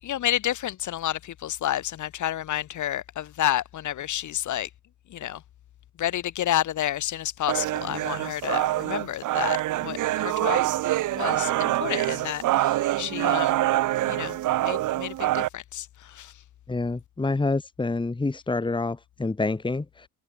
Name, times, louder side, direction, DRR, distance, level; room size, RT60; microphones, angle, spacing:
voice 1, 0.0-4.7 5.1-5.4 6.0-10.6 11.1-13.6 14.1-16.3, left 12 dB, 75° left, 6.9 m, -30 dB
sound 1, 7.5-15.5, right 15 dB, 85° right, 1.9 m, -25 dB
voice 2, 16.7-20.1, left 3 dB, 15° left, 1.6 m, -27 dB
cardioid pair, 90°, 30 cm